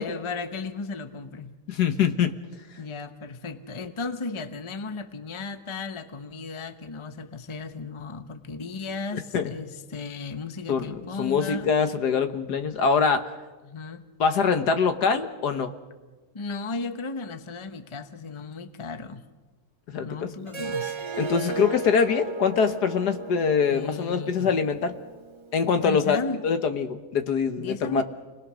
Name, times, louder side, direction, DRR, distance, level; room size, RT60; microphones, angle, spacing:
voice 1, 0.0-1.5 2.8-11.7 13.6-14.0 16.3-19.2 20.0-21.0 23.7-24.5 25.7-26.4 27.6-28.0, left 4 dB, 20° left, 9 dB, 0.8 m, -35 dB
voice 2, 1.7-2.3 9.3-9.5 10.7-13.3 14.2-15.7 19.9-20.3 21.2-24.9 25.5-26.2 26.4-28.0, left 6 dB, 75° left, 8 dB, 1.8 m, -24 dB
Harp, 20.5-25.6, right 4 dB, 35° right, 0.4 m, -35 dB
29.5 x 20.0 x 6.3 m, 1.3 s
omnidirectional pair, 1.8 m